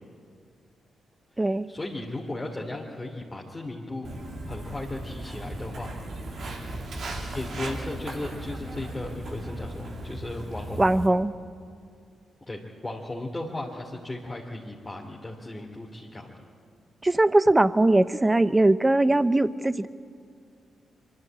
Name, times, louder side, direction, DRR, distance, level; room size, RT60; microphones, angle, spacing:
voice 1, 1.3-4.1 4.5-5.9 7.3-10.8 12.5-16.3, left 2 dB, 25° left, -3 dB, 2.8 m, -36 dB
Walk footsteps, 4.0-11.1, right 1 dB, 65° right, 2.8 m, -37 dB
voice 2, 10.8-11.3 17.0-19.9, right 2 dB, 20° right, 15 dB, 0.8 m, -21 dB
23.5 x 13.0 x 8.9 m, 2.2 s
supercardioid pair, 45°, 0 cm